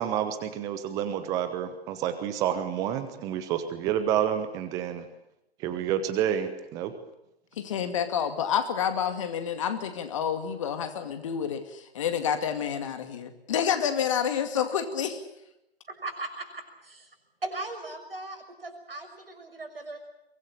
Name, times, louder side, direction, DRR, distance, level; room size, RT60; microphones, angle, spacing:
voice 1, 0.0-5.0 5.6-6.9, right 10 dB, 10° right, 10 dB, 1.1 m, -29 dB
voice 2, 7.6-15.2, left 8 dB, 30° left, 9 dB, 2.4 m, -29 dB
voice 3, 15.9-17.1 17.4-20.1, right 2 dB, 65° right, 6 dB, 6.3 m, -38 dB
23.5 x 19.0 x 8.6 m, 0.84 s
figure-of-eight pair, 140°, 31 cm